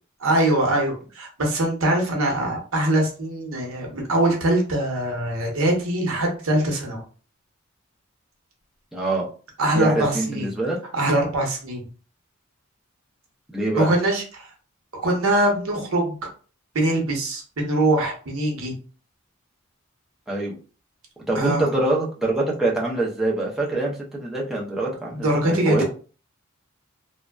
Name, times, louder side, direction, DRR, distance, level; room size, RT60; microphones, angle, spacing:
voice 1, 0.2-7.0 9.6-10.5 10.9-11.8 13.7-14.2 14.9-16.2 16.7-18.7 21.3-21.7 25.1-25.8, right 1 dB, 85° right, 1 dB, 0.8 m, -22 dB
voice 2, 8.9-9.2 9.7-10.8 13.5-13.9 20.3-20.5 21.3-25.8, right 2 dB, ahead, -4 dB, 0.5 m, -24 dB
2.6 x 2.1 x 2.2 m, 0.38 s
head